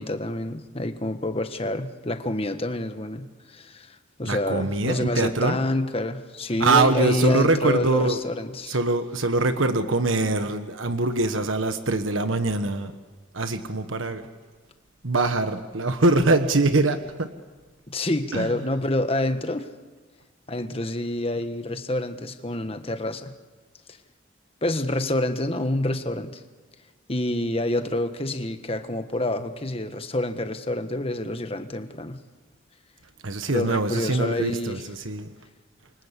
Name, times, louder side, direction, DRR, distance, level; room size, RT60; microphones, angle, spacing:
voice 1, 0.0-8.8 17.9-19.7 20.5-23.3 24.6-26.4 27.1-32.2 33.5-34.8, left 1 dB, 30° left, 8 dB, 1.4 m, -27 dB
voice 2, 4.3-5.6 6.6-8.2 8.7-12.9 13.3-14.2 15.0-17.3 18.3-18.7 33.2-35.3, right 2 dB, 85° right, 8 dB, 1.4 m, -23 dB
28.5 x 24.0 x 8.4 m, 1.4 s
head